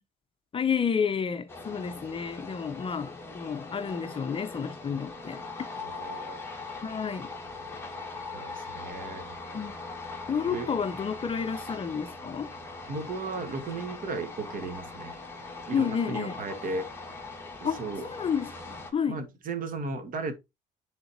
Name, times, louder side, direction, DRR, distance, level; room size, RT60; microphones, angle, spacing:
voice 1, 0.5-5.4 6.8-7.3 9.5-9.7 10.3-12.5 15.7-16.3 17.6-19.2, left 6 dB, 30° left, 0.7 m, -30 dB
sound 1, 1.5-18.9, left 3 dB, 15° left, 1.8 m, -41 dB
voice 2, 5.8-6.4 8.3-9.2 10.5-10.7 12.9-15.2 15.7-16.9 17.6-18.0 19.1-20.3, right 3 dB, 55° right, 1.7 m, -35 dB
10.0 x 4.0 x 2.8 m
cardioid pair, 110°, 17 cm